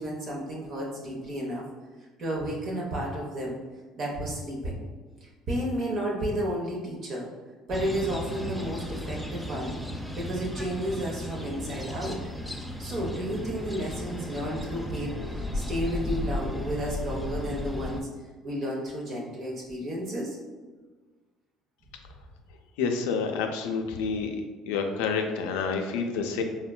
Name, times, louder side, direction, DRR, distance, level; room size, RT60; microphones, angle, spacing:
voice 1, 0.0-1.7 2.2-3.6 4.0-4.8 5.2-7.3 7.7-9.7 10.2-12.2 12.8-18.1 18.4-20.4, equal, 50° right, -3 dB, 0.6 m, -32 dB
sound 1, 7.7-18.0, left 1 dB, ahead, 0.3 m, -35 dB
voice 2, 22.8-24.4 24.7-26.4, left 5 dB, 85° left, 4 dB, 0.3 m, -28 dB
3.5 x 2.1 x 2.2 m, 1.3 s
supercardioid pair, 85°, 0 cm